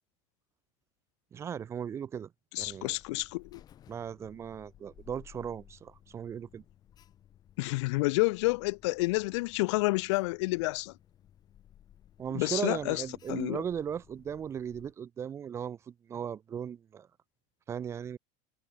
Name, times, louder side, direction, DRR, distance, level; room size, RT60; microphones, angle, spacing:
voice 1, 1.3-2.3 2.6-2.9 3.9-6.6 12.2-17.1 17.7-18.2, right 8 dB, 15° right, 0.7 m, -37 dB
voice 2, 2.5-3.6 7.6-10.9 12.3-13.0 13.3-13.6, left 23 dB, 70° left, 0.6 m, -29 dB
Alarm, 2.6-14.9, left 11 dB, 25° left, 3.4 m, -58 dB
cardioid pair, 175°, 15 cm